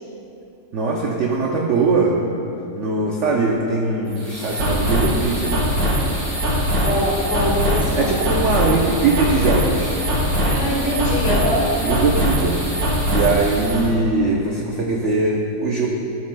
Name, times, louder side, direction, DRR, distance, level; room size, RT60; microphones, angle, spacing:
voice 1, 0.7-2.2 2.8-5.6 7.9-9.9 11.8-12.6 13.1-15.9, right 3 dB, 75° right, -1 dB, 0.6 m, -21 dB
sound 1, 4.1-13.9, equal, 60° right, 2.3 m, -22 dB
voice 2, 6.8-8.2 10.4-11.7, equal, 40° left, -7 dB, 2.3 m, -23 dB
13.5 x 7.1 x 2.2 m, 2.8 s
omnidirectional pair, 2.0 m